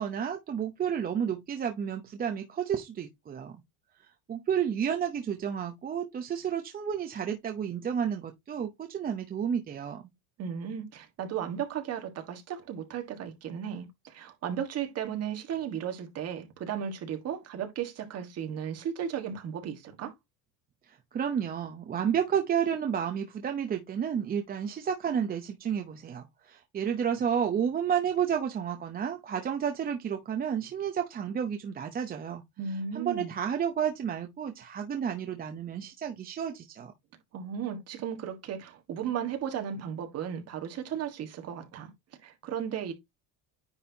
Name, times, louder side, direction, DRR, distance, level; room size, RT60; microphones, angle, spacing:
voice 1, 0.0-3.6 4.3-10.0 20.9-32.4 32.9-36.9, right 8 dB, 25° right, 0.7 m, -31 dB
voice 2, 10.4-20.1 32.6-33.3 37.3-41.9 42.2-42.9, right 8 dB, 40° right, 1.6 m, -35 dB
9.7 x 4.3 x 2.8 m
cardioid pair, 155°, 38 cm